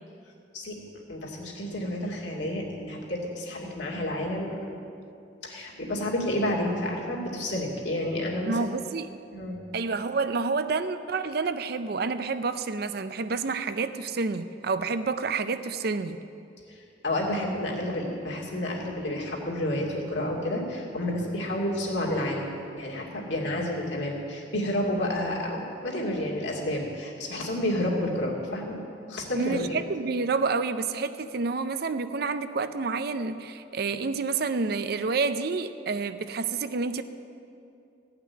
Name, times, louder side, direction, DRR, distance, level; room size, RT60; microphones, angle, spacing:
voice 1, 1.1-4.8 5.4-8.6 9.3-9.6 16.7-28.8 29.1-29.8, left 1 dB, 70° left, -2 dB, 2.5 m, -30 dB
voice 2, 8.4-9.1 9.7-16.2 29.3-37.0, right 4 dB, 55° right, 11 dB, 0.5 m, -29 dB
15.0 x 5.9 x 9.5 m, 2.5 s
head